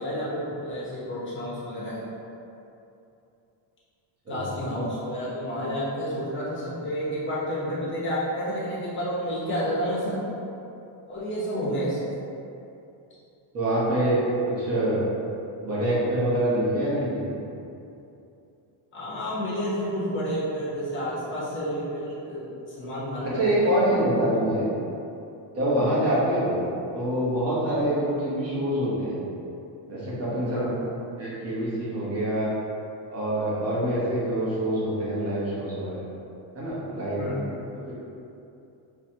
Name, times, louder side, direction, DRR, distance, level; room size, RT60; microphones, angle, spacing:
voice 1, 0.0-2.0 4.3-10.2 11.1-12.0 18.9-22.5 22.8-23.7 25.7-25.9 30.5-30.7 37.2-37.5, equal, 25° left, -8 dB, 0.9 m, -30 dB
voice 2, 13.5-15.0 15.6-17.4 23.2-24.6 25.5-26.7 26.9-29.1 29.9-30.7 31.2-32.5 33.1-36.1 36.5-37.4 37.8-37.9, right 1 dB, 30° right, -8 dB, 1.1 m, -25 dB
3.9 x 2.8 x 2.8 m, 2.8 s
cardioid pair, 160°, 46 cm